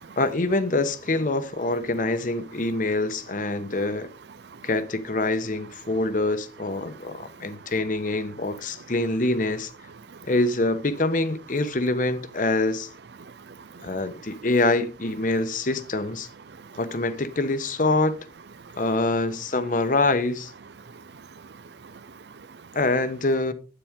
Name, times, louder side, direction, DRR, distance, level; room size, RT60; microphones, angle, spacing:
voice 1, 0.2-4.1 4.6-9.7 10.2-12.9 13.8-16.3 16.8-18.2 18.8-20.5 22.7-23.5, left 2 dB, 50° left, 1.0 m, -25 dB
voice 2, 13.2-13.9 16.6-16.8 20.9-22.6, right 5 dB, 70° right, 0.6 m, -46 dB
10.0 x 8.6 x 3.7 m
head